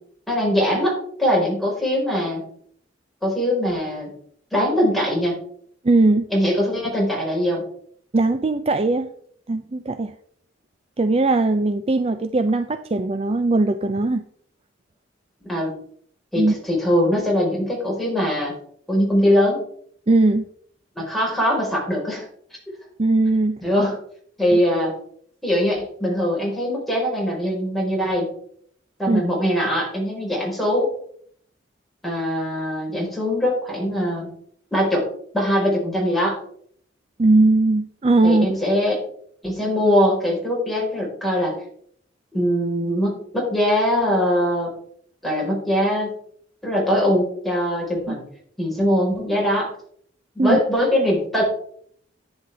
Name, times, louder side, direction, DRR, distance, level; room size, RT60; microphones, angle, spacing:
voice 1, 0.3-2.4 3.2-4.1 4.5-5.3 6.3-7.6 15.4-15.7 16.3-18.5 18.9-19.6 20.9-22.3 23.6-24.0 24.4-24.9 25.4-28.3 29.0-30.9 32.0-34.3 34.7-35.1 35.3-36.4 38.2-39.0 39.4-41.5 42.3-44.7 45.2-46.1 46.6-48.2 48.6-49.7 50.3-51.4, equal, ahead, -4 dB, 4.5 m, -21 dB
voice 2, 5.8-6.3 8.1-9.1 9.5-10.1 11.0-14.2 16.4-16.5 20.1-20.4 23.0-23.6 24.5-24.6 29.1-29.2 37.2-38.5 48.1-48.2 50.4-50.6, right 2 dB, 30° right, 10 dB, 0.5 m, -19 dB
11.0 x 9.8 x 3.4 m, 0.62 s
head